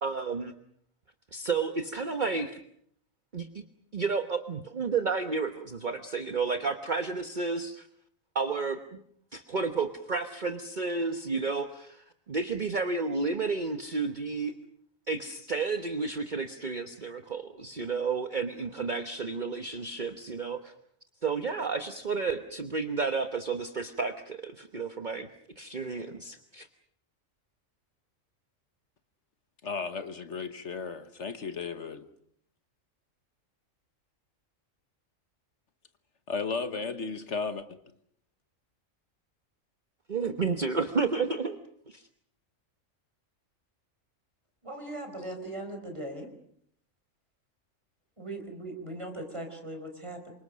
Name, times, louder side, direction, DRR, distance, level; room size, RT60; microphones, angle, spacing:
voice 1, 0.0-0.5 1.3-2.6 3.3-3.5 3.9-7.9 8.3-9.0 9.3-14.5 15.1-20.7 21.2-25.3 25.6-26.7 40.1-41.6 41.9-42.1, right 4 dB, 35° right, 1.3 m, -31 dB
voice 2, 29.6-32.1 36.3-37.6, left 4 dB, 60° left, 1.5 m, -34 dB
voice 3, 44.6-46.3 48.2-50.3, right 1 dB, 20° right, 4.6 m, -39 dB
27.5 x 25.0 x 6.3 m
omnidirectional pair, 1.4 m